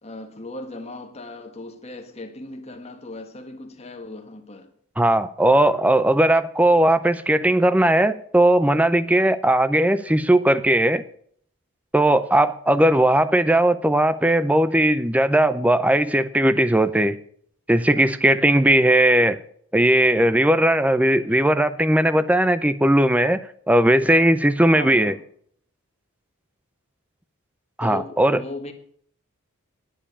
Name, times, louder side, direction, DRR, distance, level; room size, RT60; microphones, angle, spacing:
voice 1, 0.0-4.7 24.7-25.2 27.8-28.7, left 2 dB, 30° left, 1.6 m, -37 dB
voice 2, 5.0-11.0 11.9-17.2 17.7-19.4 19.7-23.4 23.7-25.1 27.8-28.4, right 1 dB, 5° right, 0.5 m, -18 dB
10.0 x 9.1 x 8.6 m
head